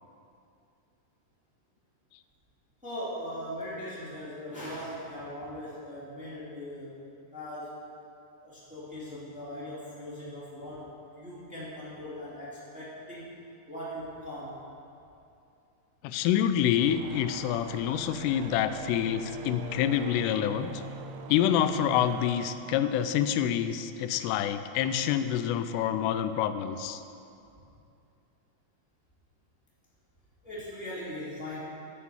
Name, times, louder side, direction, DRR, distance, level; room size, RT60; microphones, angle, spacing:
voice 1, 2.8-7.0 7.3-7.7 8.4-10.9 11.2-13.3 13.7-14.6 30.4-31.6, left 1 dB, 5° right, -8 dB, 1.8 m, -39 dB
voice 2, 16.0-20.7 21.3-27.0, left 10 dB, 90° left, 11 dB, 2.7 m, -27 dB
sound 1, 16.6-23.9, right 6 dB, 90° right, 2.0 m, -43 dB
9.4 x 8.2 x 7.1 m, 2.6 s
omnidirectional pair, 4.7 m